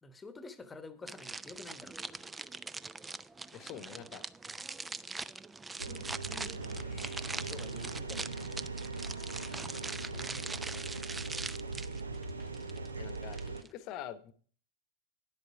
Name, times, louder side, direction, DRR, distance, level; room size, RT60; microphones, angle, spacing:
voice 1, 0.0-2.2 4.5-4.6 7.3-8.9 9.9-11.6, left 3 dB, 15° left, 11 dB, 1.1 m, -51 dB
sound 1, 1.1-13.7, right 3 dB, 10° right, 0.4 m, -43 dB
voice 2, 3.5-4.2 6.8-7.4 12.9-13.4 13.7-14.3, left 10 dB, 40° left, 14 dB, 1.0 m, -46 dB
sound 2, 5.8-13.6, right 3 dB, 75° right, 0.7 m, -40 dB
10.5 x 8.1 x 4.7 m, 0.44 s
figure-of-eight pair, 90°, 0 cm